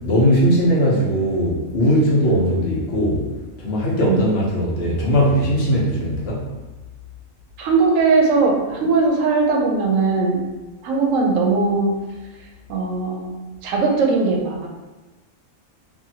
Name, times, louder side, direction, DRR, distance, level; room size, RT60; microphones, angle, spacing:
voice 1, 0.0-3.3 3.6-6.5, equal, 60° left, -5 dB, 0.9 m, -19 dB
voice 2, 7.6-10.4 10.8-11.9 12.7-13.3 13.6-14.7, right 4 dB, 80° right, 0 dB, 1.0 m, -19 dB
2.9 x 2.6 x 2.7 m, 1.1 s
omnidirectional pair, 1.3 m